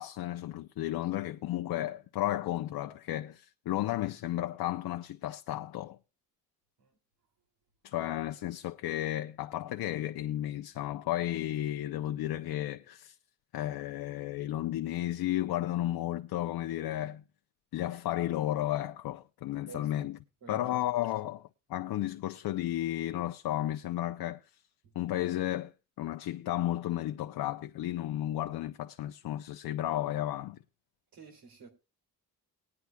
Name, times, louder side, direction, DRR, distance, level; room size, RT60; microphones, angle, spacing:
voice 1, 0.0-6.0 7.8-13.2 13.5-17.2 17.7-20.2 20.5-24.4 25.0-25.7 26.0-30.6, left 13 dB, 85° left, 0.6 m, -33 dB
voice 2, 19.7-20.1 20.4-20.6 31.1-31.7, right 5 dB, 70° right, 2.7 m, -50 dB
20.0 x 9.6 x 2.2 m
wide cardioid pair, 140°, 36 cm